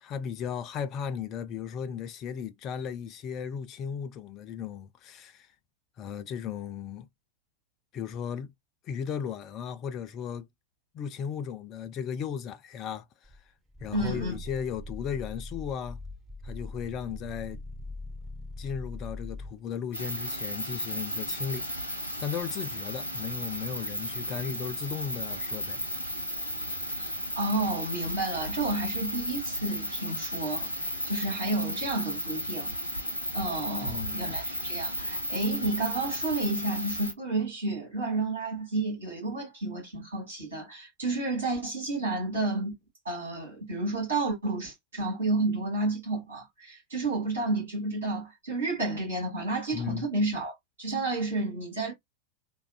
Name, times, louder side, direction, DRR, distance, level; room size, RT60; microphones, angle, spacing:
voice 1, 0.0-5.5 6.0-7.1 7.9-8.5 8.8-10.5 10.9-13.1 13.8-16.0 16.4-17.6 18.6-21.7 22.2-25.8 33.8-34.2 49.7-50.1, left 7 dB, 35° left, 0.4 m, -36 dB
Growling, 13.2-19.6, left 2 dB, 15° right, 0.8 m, -41 dB
voice 2, 13.9-14.4 27.0-27.1 27.4-32.7 33.3-42.7 43.1-51.9, right 2 dB, 65° right, 1.9 m, -31 dB
sound 1, 19.9-37.1, equal, 90° right, 0.7 m, -34 dB
3.4 x 2.0 x 2.3 m
figure-of-eight pair, 90°, 0 cm